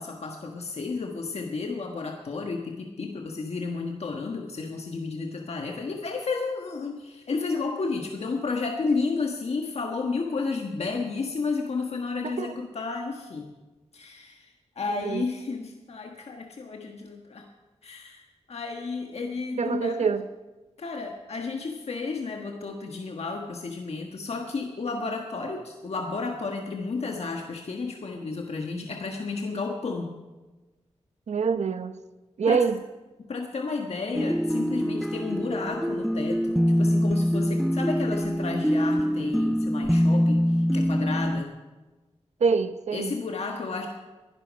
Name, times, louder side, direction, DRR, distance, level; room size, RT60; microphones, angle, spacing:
voice 1, 0.0-13.5 13.9-17.4 17.8-20.1 20.8-30.2 32.5-32.6 33.3-41.5 42.9-43.9, left 4 dB, 65° left, 2 dB, 1.4 m, -32 dB
voice 2, 12.2-12.5 15.0-15.2 19.6-20.2 28.7-28.9 31.3-32.0 32.4-32.8 42.4-43.2, right 5 dB, 80° right, 11 dB, 0.8 m, -25 dB
sound 1, 34.1-41.4, equal, ahead, 0.4 m, -24 dB
21.0 x 11.5 x 5.2 m, 1.2 s
wide cardioid pair, 110°, 11 cm